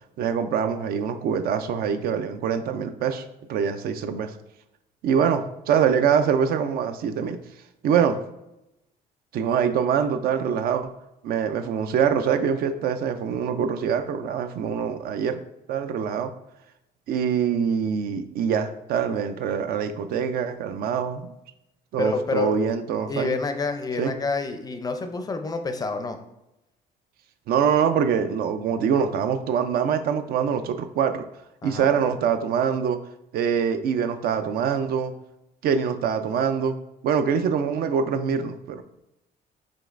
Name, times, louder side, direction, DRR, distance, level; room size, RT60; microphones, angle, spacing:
voice 1, 0.2-3.2 3.5-4.3 5.0-7.4 7.8-8.2 9.3-10.9 11.2-15.4 15.7-16.3 17.1-21.3 21.9-23.3 24.0-24.1 27.5-31.2 31.6-33.0 33.3-35.1 35.6-36.8 37.0-38.8, right 7 dB, 65° right, 9 dB, 0.4 m, -24 dB
voice 2, 22.0-22.5 23.1-26.2 31.6-31.9, left 3 dB, 20° left, 7 dB, 0.4 m, -28 dB
5.1 x 3.2 x 2.4 m, 0.89 s
cardioid pair, 110°, 17 cm